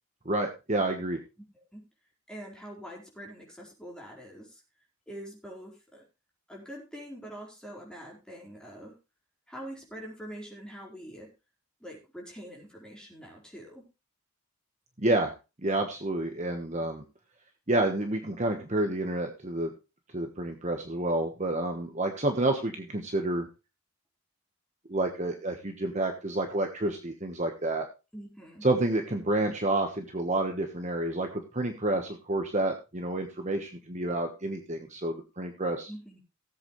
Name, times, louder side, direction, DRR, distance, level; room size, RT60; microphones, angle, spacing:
voice 1, 0.2-1.2 15.0-15.3 15.6-17.0 17.7-19.7 20.1-23.5 24.9-27.9 28.6-35.9, right 2 dB, 30° right, 4 dB, 1.3 m, -29 dB
voice 2, 2.3-4.6 5.1-6.0 6.5-9.0 9.5-11.3 11.8-13.9 28.1-28.7 35.9-36.2, equal, 5° left, -2 dB, 4.3 m, -44 dB
17.5 x 8.1 x 3.2 m, 0.28 s
head